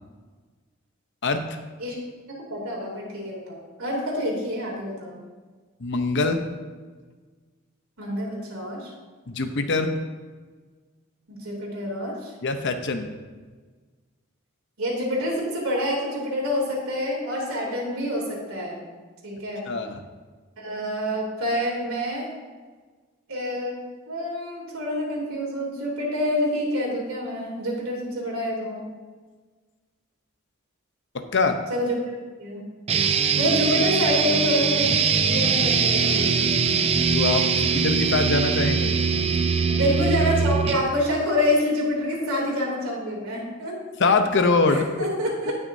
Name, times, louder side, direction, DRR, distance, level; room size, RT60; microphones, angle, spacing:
voice 1, 2.5-5.2 8.0-8.9 11.3-12.3 14.8-18.8 19.2-19.7 20.6-22.3 23.3-28.8 31.7-32.6 33.3-34.9 35.2-36.8 39.7-43.7 44.7-45.5, left 1 dB, 75° right, -2 dB, 3.1 m, -27 dB
voice 2, 5.8-6.4 9.3-10.0 12.4-13.1 19.7-20.0 31.1-31.6 37.1-39.0 44.0-44.9, left 3 dB, 55° left, 7 dB, 0.8 m, -23 dB
sound 1, 32.9-40.9, right 5 dB, 30° right, 0.4 m, -22 dB
18.0 x 6.2 x 2.7 m, 1.4 s
head